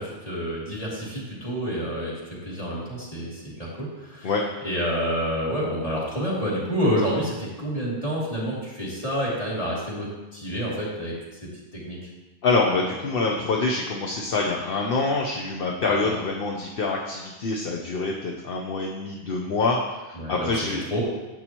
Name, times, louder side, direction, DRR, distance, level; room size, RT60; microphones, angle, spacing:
voice 1, 0.0-4.3 4.6-11.1 11.4-12.1 16.0-16.1 20.2-20.5 20.9-21.0, equal, 35° left, -7 dB, 3.0 m, -28 dB
voice 2, 12.4-20.8, left 3 dB, 65° left, 0 dB, 1.0 m, -26 dB
11.0 x 8.0 x 3.0 m, 1.2 s
omnidirectional pair, 1.1 m